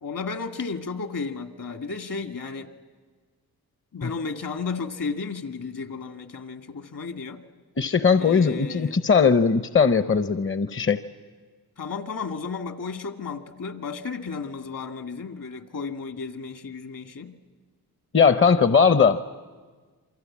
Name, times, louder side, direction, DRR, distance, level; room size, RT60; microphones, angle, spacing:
voice 1, 0.0-2.7 3.9-7.4 8.2-9.0 11.8-17.4, left 4 dB, 60° left, 8 dB, 2.0 m, -33 dB
voice 2, 7.8-11.0 18.1-19.2, left 5 dB, 35° left, 12 dB, 0.8 m, -19 dB
28.0 x 24.0 x 8.6 m, 1.5 s
cardioid pair, 65°, 37 cm